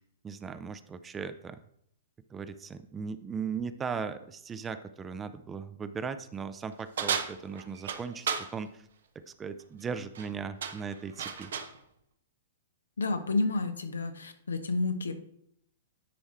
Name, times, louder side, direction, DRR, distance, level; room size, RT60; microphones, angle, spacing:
voice 1, 0.2-1.6 2.3-8.8 9.1-11.5, right 6 dB, 20° right, 11 dB, 0.5 m, -38 dB
sound 1, 7.0-8.5 10.0-10.3 10.6-11.8, right 7 dB, 65° right, 0.9 m, -34 dB
voice 2, 13.0-15.1, left 3 dB, 80° left, 8 dB, 1.0 m, -30 dB
10.0 x 4.6 x 4.3 m, 0.72 s
hypercardioid pair, 115°, 0 cm